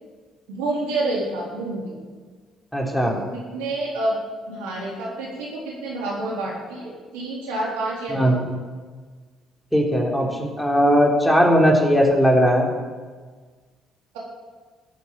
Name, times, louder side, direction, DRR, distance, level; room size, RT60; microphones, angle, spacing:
voice 1, 0.5-2.0 3.0-3.2 3.5-4.2 4.5-8.4, right 2 dB, 80° right, -4 dB, 4.0 m, -28 dB
voice 2, 2.7-3.1 8.1-8.4 9.7-12.7, equal, 5° left, -1 dB, 4.1 m, -18 dB
14.5 x 8.5 x 9.2 m, 1.5 s
hypercardioid pair, 55°, 0 cm